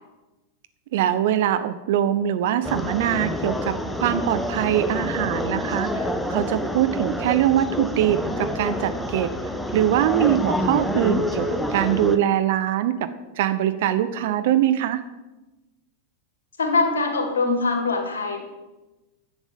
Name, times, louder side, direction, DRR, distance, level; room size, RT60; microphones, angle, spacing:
voice 1, 0.9-9.3 9.7-13.1 13.4-15.0, right 11 dB, 55° right, 11 dB, 0.6 m, -23 dB
sound 1, 2.6-12.2, equal, ahead, 0.8 m, -27 dB
voice 2, 16.6-18.4, left 3 dB, 70° left, 4 dB, 1.8 m, -23 dB
10.5 x 7.3 x 5.2 m, 1.1 s
figure-of-eight pair, 90°, 0 cm